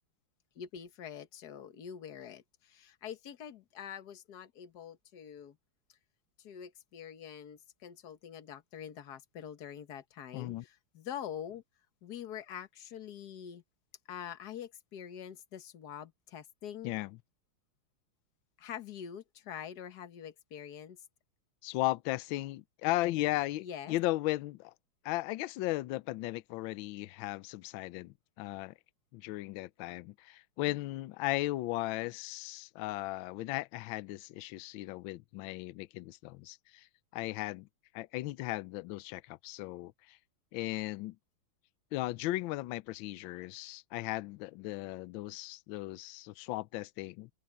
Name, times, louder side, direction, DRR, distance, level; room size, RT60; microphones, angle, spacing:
voice 1, 0.5-5.6 6.4-11.6 12.0-13.6 14.1-17.0 18.6-21.0 23.6-24.0, left 9 dB, 50° left, 1.7 m, -45 dB
voice 2, 10.3-10.6 16.8-17.2 21.6-24.7 25.0-28.7 29.1-37.7 37.9-40.2 40.5-41.2 41.9-47.3, left 18 dB, 75° left, 1.3 m, -36 dB
open air
omnidirectional pair, 2.3 m